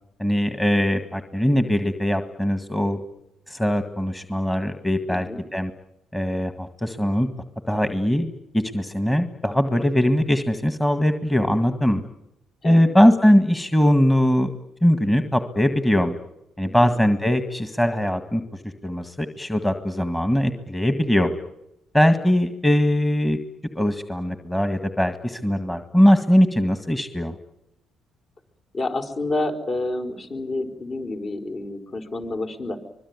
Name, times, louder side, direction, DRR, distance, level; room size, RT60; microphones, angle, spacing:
voice 1, 0.2-3.0 3.5-5.7 6.1-7.3 7.7-12.0 12.6-14.5 14.8-16.2 16.6-21.3 21.9-23.4 23.8-27.4, equal, 10° left, 9 dB, 1.9 m, -21 dB
voice 2, 5.1-5.4 12.6-12.8 16.8-16.9 28.7-32.8, left 2 dB, 45° left, 6 dB, 4.7 m, -29 dB
24.5 x 22.0 x 9.8 m, 0.87 s
cardioid pair, 90°, 0 cm